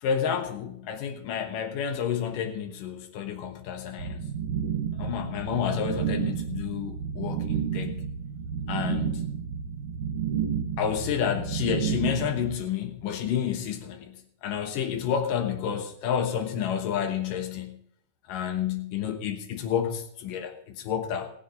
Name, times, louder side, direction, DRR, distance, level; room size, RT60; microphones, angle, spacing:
voice 1, 0.0-4.2 5.0-8.0 8.7-9.3 10.8-17.8 18.3-21.3, left 8 dB, 85° left, 5 dB, 2.9 m, -30 dB
sound 1, 4.0-12.5, right 7 dB, 70° right, 2.3 m, -31 dB
18.5 x 7.5 x 5.2 m, 0.67 s
omnidirectional pair, 3.7 m